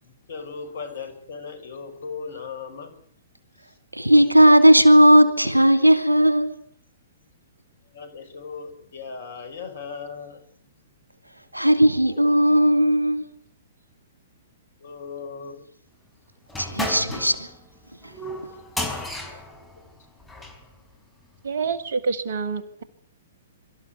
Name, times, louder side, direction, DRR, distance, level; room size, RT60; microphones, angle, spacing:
voice 1, 0.0-3.0 3.6-3.8 7.9-10.4 14.8-15.7 19.2-19.4 19.7-19.8 20.4-20.5, left 5 dB, 55° left, 5.2 m, -38 dB
voice 2, 3.9-6.5 11.5-13.2 16.6-17.5, equal, 85° right, 2.8 m, -16 dB
sound 1, 16.5-20.6, left 1 dB, 5° left, 5.0 m, -33 dB
voice 3, 21.4-22.8, right 5 dB, 55° right, 2.1 m, -27 dB
24.0 x 14.0 x 9.6 m
figure-of-eight pair, 115°, 0 cm